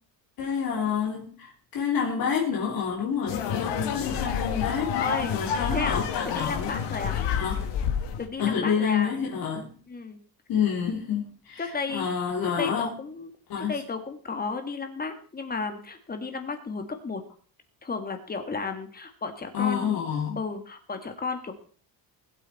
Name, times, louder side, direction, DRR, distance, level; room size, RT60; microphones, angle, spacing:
voice 1, 0.4-6.7 7.4-7.7 8.4-9.8 10.5-13.0 13.5-13.7 19.5-20.4, left 7 dB, 50° left, 3.1 m, -28 dB
sound 1, 3.3-8.3, left 8 dB, 65° left, 2.4 m, -29 dB
voice 2, 5.0-5.4 5.7-7.2 8.2-9.1 9.9-10.2 11.6-12.1 12.6-13.3 13.6-17.2 17.8-20.0 20.4-21.5, left 4 dB, 20° left, 1.9 m, -33 dB
20.5 x 8.5 x 4.2 m
cardioid pair, 145°, 45 cm